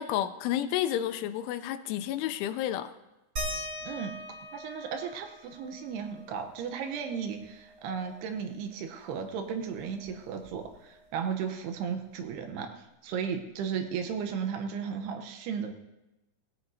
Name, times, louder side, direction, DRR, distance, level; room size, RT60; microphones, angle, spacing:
voice 1, 0.0-2.9, left 11 dB, 85° left, 11 dB, 2.9 m, -31 dB
sound 1, 3.4-8.5 8.8-8.9 9.3-11.0 12.3-12.4 13.1-13.2, equal, 25° right, 3.1 m, -42 dB
voice 2, 3.8-4.2 4.5-15.7, right 7 dB, 80° right, 5 dB, 2.4 m, -35 dB
18.0 x 15.5 x 2.7 m, 0.97 s
omnidirectional pair, 5.7 m